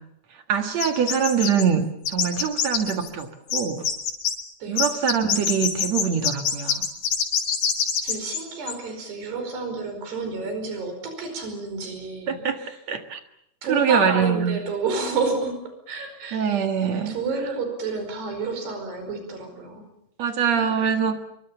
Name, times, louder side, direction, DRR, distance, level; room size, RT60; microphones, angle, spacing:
voice 1, 0.5-3.9 4.7-6.9 12.3-12.6 12.9-13.2 13.7-14.6 16.3-17.1 20.2-21.2, right 7 dB, 50° right, 7 dB, 2.4 m, -23 dB
sound 1, 0.8-1.6 2.1-3.2 3.5-4.3 4.8-8.4 8.7-8.8, left 7 dB, 70° left, 4.9 m, -24 dB
voice 2, 8.0-12.8 13.6-15.6 15.9-16.4 17.1-19.9 20.6-21.1, right 4 dB, 80° right, 6 dB, 7.1 m, -30 dB
25.5 x 23.5 x 7.1 m, 0.77 s
omnidirectional pair, 4.7 m